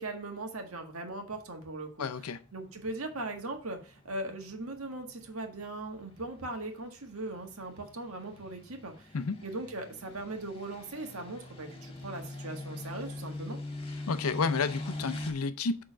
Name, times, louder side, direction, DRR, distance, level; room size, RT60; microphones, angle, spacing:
voice 1, 0.0-2.1 2.5-9.2 9.4-13.6, right 2 dB, 75° right, 1.6 m, -39 dB
voice 2, 2.0-2.4 9.1-9.4 14.1-15.8, left 4 dB, 85° left, 0.6 m, -31 dB
sound 1, 2.4-15.3, left 2 dB, 25° left, 1.4 m, -43 dB
6.7 x 3.7 x 6.2 m
head